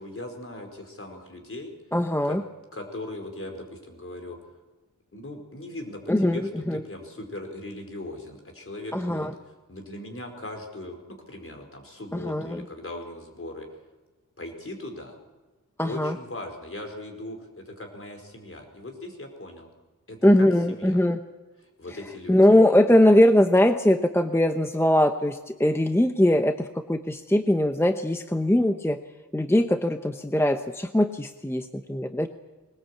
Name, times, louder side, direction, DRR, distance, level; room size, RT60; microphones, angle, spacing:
voice 1, 0.0-1.7 2.2-2.4 2.7-4.4 5.1-9.3 9.7-11.0 11.3-13.7 14.4-15.2 15.8-19.7 20.1-21.0 21.8-22.4, left 1 dB, 45° left, 3 dB, 4.8 m, -39 dB
voice 2, 1.9-2.4 6.1-6.8 8.9-9.3 12.1-12.6 15.8-16.2 20.2-21.2 22.3-29.0 29.3-32.3, left 1 dB, 10° left, 7 dB, 0.9 m, -21 dB
21.0 x 19.5 x 8.5 m, 1.2 s
wide cardioid pair, 90°, 31 cm